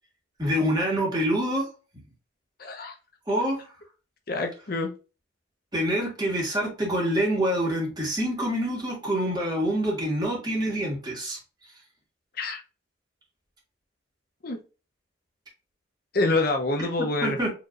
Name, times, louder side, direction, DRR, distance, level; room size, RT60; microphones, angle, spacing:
voice 1, 0.4-1.7 3.3-3.6 5.7-11.4 17.2-17.5, equal, 20° right, -2 dB, 1.7 m, -26 dB
voice 2, 2.6-2.9 4.3-4.9 12.4-12.6 14.4-14.6 16.1-17.4, left 2 dB, 50° left, 4 dB, 0.7 m, -26 dB
4.9 x 3.0 x 2.5 m, 0.32 s
head